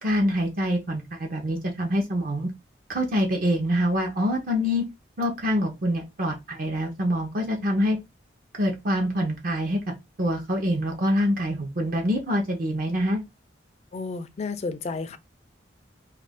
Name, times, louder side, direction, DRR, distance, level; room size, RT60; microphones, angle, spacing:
voice 1, 0.0-2.5 2.9-4.8 5.2-8.0 8.6-9.8 10.2-13.2, equal, 50° right, 0.6 m, -25 dB
voice 2, 13.9-15.2, left 4 dB, 35° left, 0.3 m, -32 dB
2.4 x 2.2 x 3.4 m
head